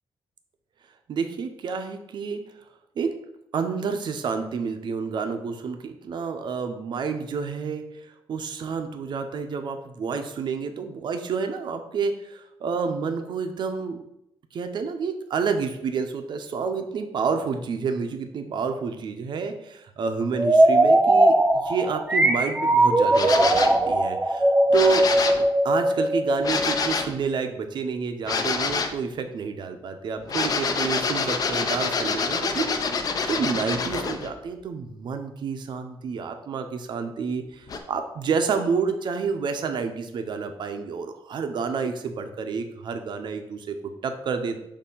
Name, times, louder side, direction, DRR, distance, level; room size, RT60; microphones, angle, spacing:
voice 1, 1.1-2.4 3.0-3.1 3.5-14.0 14.5-25.1 25.6-32.8 33.3-44.7, right 5 dB, 50° right, 7 dB, 0.6 m, -29 dB
sound 1, 20.3-27.0, right 1 dB, 10° right, 0.4 m, -19 dB
sound 2, 23.1-23.8 24.7-25.5 26.4-27.2 28.2-29.0 30.2-34.3 37.7-37.8, left 4 dB, 40° left, 0.5 m, -27 dB
6.7 x 2.7 x 5.4 m, 0.82 s
wide cardioid pair, 170°, 10 cm